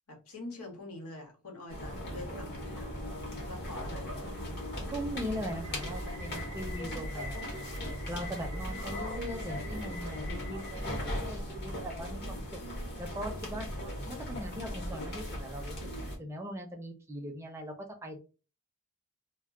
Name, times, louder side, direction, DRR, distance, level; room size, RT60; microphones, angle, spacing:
voice 1, 0.1-3.0 3.5-4.2 8.9-9.0, left 2 dB, 90° left, 1 dB, 1.0 m, -45 dB
sound 1, 1.7-16.1, equal, 50° left, 0.8 m, -38 dB
voice 2, 4.9-7.6 8.1-12.6 13.0-13.8 14.1-18.2, equal, 10° right, 3 dB, 0.4 m, -40 dB
2.2 x 2.1 x 3.5 m, 0.33 s
head